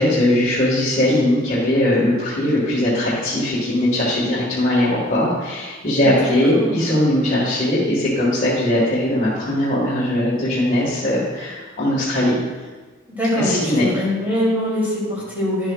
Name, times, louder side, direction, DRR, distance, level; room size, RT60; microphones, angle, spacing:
voice 1, 0.0-12.4 13.3-13.9, left 1 dB, 40° left, -8 dB, 1.8 m, -20 dB
voice 2, 6.0-6.8 13.1-15.7, left 1 dB, 10° right, -7 dB, 2.7 m, -23 dB
10.5 x 7.8 x 2.4 m, 1.3 s
head